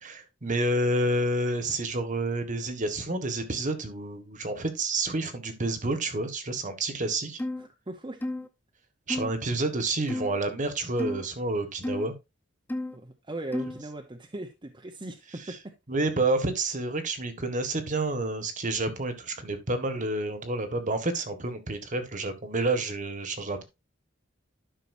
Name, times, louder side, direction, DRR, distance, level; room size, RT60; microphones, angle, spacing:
voice 1, 0.0-7.4 9.1-12.1 15.9-23.6, right 2 dB, 40° right, 1.5 m, -29 dB
sound 1, 7.4-7.7 8.2-8.5 9.1-9.3 10.1-10.4 11.0-11.3 11.8-12.1 12.7-13.0 13.5-13.8, left 1 dB, 10° left, 0.5 m, -32 dB
voice 2, 7.6-8.2 12.9-15.7, right 2 dB, 25° right, 0.8 m, -39 dB
11.5 x 5.8 x 2.6 m
head